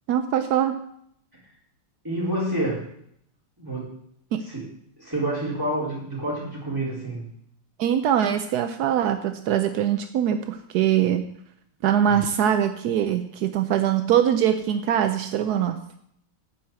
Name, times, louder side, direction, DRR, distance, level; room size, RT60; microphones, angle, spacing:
voice 1, 0.1-0.8 4.3-4.4 7.8-11.3 11.8-15.8, right 10 dB, 75° right, 8 dB, 0.9 m, -22 dB
voice 2, 2.0-2.8 3.6-3.9 4.5-4.7 5.0-7.2 12.1-12.2, right 1 dB, 10° right, -6 dB, 4.2 m, -28 dB
10.0 x 5.8 x 7.7 m, 0.70 s
omnidirectional pair, 2.4 m